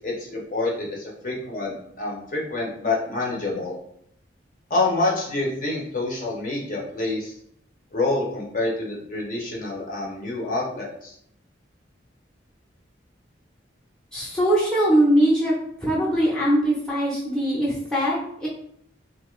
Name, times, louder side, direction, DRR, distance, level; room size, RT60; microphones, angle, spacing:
voice 1, 0.0-3.7 4.7-7.3 7.9-11.1, left 2 dB, 45° left, -3 dB, 0.7 m, -27 dB
voice 2, 14.1-15.5 15.8-18.5, right 1 dB, 5° left, -7 dB, 0.7 m, -21 dB
2.8 x 2.4 x 3.1 m, 0.70 s
head